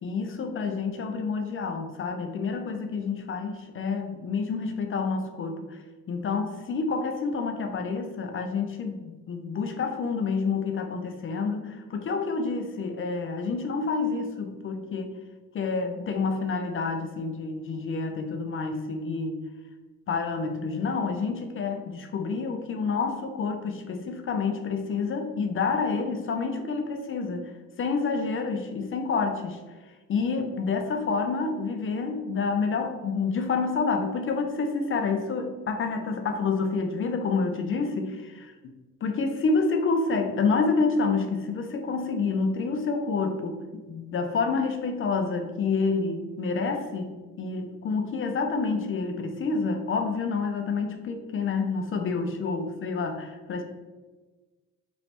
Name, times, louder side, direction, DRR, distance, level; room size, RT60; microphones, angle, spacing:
voice 1, 0.0-5.8 6.1-15.2 15.5-19.4 20.1-27.5 27.8-29.6 30.1-38.5 39.0-43.6 43.9-53.6, left 4 dB, 45° left, 5 dB, 0.4 m, -28 dB
3.1 x 3.0 x 2.9 m, 1.3 s
cardioid pair, 90°, 30 cm